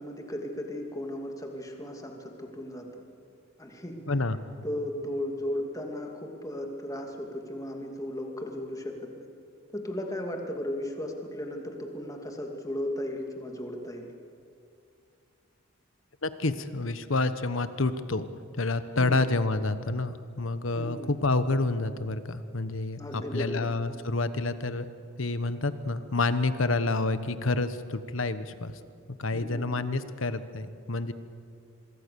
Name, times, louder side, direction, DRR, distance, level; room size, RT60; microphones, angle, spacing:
voice 1, 0.0-2.9 3.6-4.0 4.6-9.3 9.7-14.1 19.0-19.2 20.7-21.1 23.0-23.7 29.3-29.7, left 1 dB, 15° left, 2 dB, 2.5 m, -35 dB
voice 2, 4.1-4.4 16.2-18.2 18.6-24.8 25.2-28.7 29.2-31.1, left 2 dB, 70° left, 12 dB, 1.2 m, -28 dB
25.0 x 22.5 x 7.0 m, 2.4 s
head